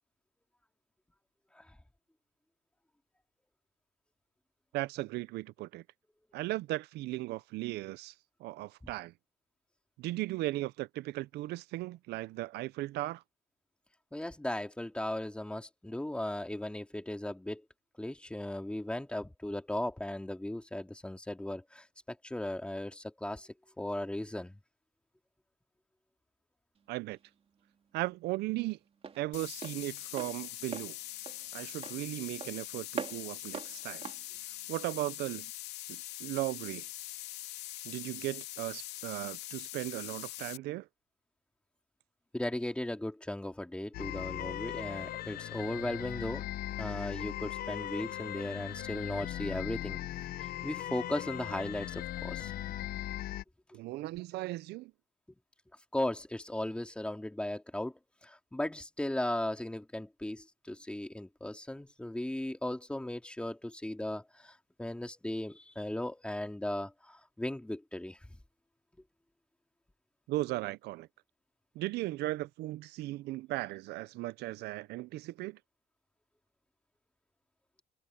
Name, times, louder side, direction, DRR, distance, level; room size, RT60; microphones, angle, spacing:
voice 1, 4.7-5.8 6.3-8.1 8.4-9.1 10.0-13.2 26.9-27.2 27.9-28.8 29.1-31.0 31.5-34.1 34.4-35.5 35.9-36.9 37.8-40.9 53.7-54.9 70.3-71.1 71.8-75.6, right 18 dB, 80° right, 0.5 m, -37 dB
voice 2, 14.1-17.6 18.0-23.5 23.8-24.6 42.3-46.5 46.8-50.0 50.4-52.5 53.7-53.8 55.9-68.2, left 1 dB, 5° left, 2.4 m, -37 dB
Walk footsteps, 26.8-35.4, right 6 dB, 35° right, 3.3 m, -45 dB
sound 1, 29.3-40.6, left 16 dB, 90° left, 2.8 m, -43 dB
sound 2, 43.9-53.4, left 13 dB, 65° left, 0.8 m, -39 dB
cardioid pair, 110°, 17 cm